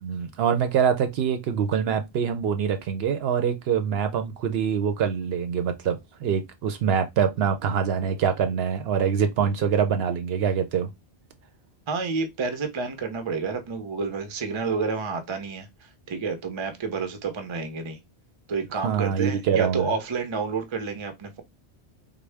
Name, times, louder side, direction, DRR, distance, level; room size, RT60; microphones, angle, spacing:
voice 1, 0.0-10.9 18.8-19.9, right 7 dB, 70° right, 0.8 m, -24 dB
voice 2, 11.9-15.7 16.1-18.0 18.5-21.4, right 5 dB, 35° right, 0.5 m, -29 dB
3.5 x 2.1 x 3.2 m
omnidirectional pair, 1.1 m